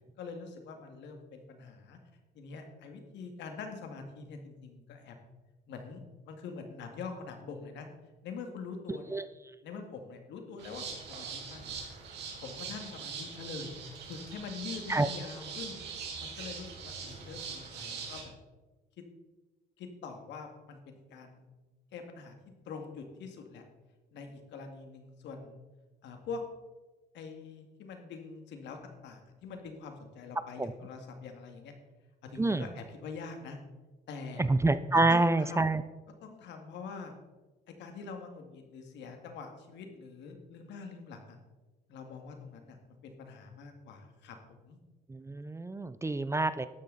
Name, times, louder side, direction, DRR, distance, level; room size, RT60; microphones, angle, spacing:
voice 1, 0.2-2.0 2.4-5.2 5.7-7.9 8.2-9.1 9.6-11.8 12.4-13.7 14.1-15.8 16.2-18.3 19.0-19.1 19.8-21.5 21.9-22.3 22.7-23.6 24.1-25.6 26.0-26.4 27.1-31.7 32.2-33.6 34.1-34.4 35.1-35.8 36.2-37.1 37.8-41.4 41.9-44.8, left 5 dB, 80° left, 4 dB, 2.2 m, -44 dB
voice 2, 8.9-9.3 14.9-15.1 30.6-30.7 32.4-32.6 34.4-35.8 45.1-46.7, right 2 dB, 15° right, 13 dB, 0.6 m, -27 dB
sound 1, 10.6-18.2, right 5 dB, 75° right, 3.9 m, -42 dB
13.0 x 11.0 x 4.1 m, 1.2 s
cardioid pair, 95°, 18 cm